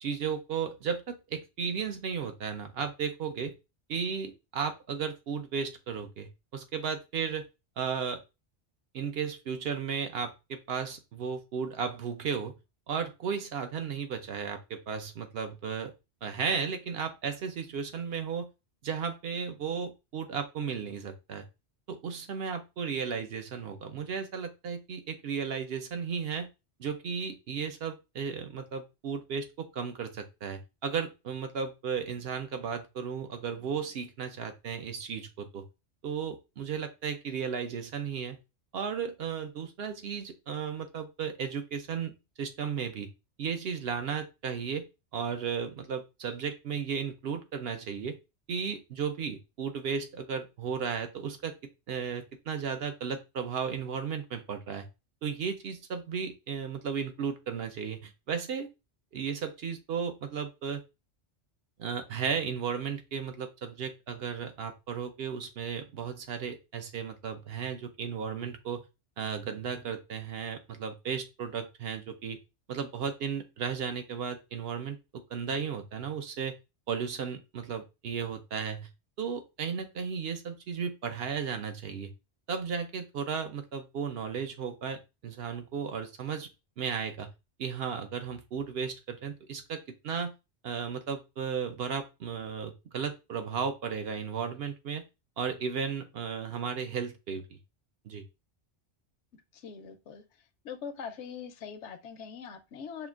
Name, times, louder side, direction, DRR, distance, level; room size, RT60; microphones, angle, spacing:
voice 1, 0.0-3.5 3.9-7.5 7.8-8.2 8.9-12.5 12.9-15.9 16.2-18.5 18.8-21.5 21.9-26.5 26.8-35.6 36.0-38.4 38.7-43.1 43.4-44.9 45.1-48.2 48.5-51.5 51.9-54.9 55.2-58.7 59.1-60.8 61.8-68.8 69.2-72.4 72.7-76.6 76.9-78.9 79.2-82.1 82.5-86.5 86.8-87.3 87.6-90.3 90.6-95.0 95.4-97.6 98.0-98.2, right 6 dB, 65° right, 7 dB, 0.8 m, -34 dB
voice 2, 99.5-100.2 100.6-103.1, left 6 dB, 80° left, 9 dB, 0.9 m, -42 dB
5.7 x 2.5 x 2.3 m, 0.26 s
omnidirectional pair, 1.2 m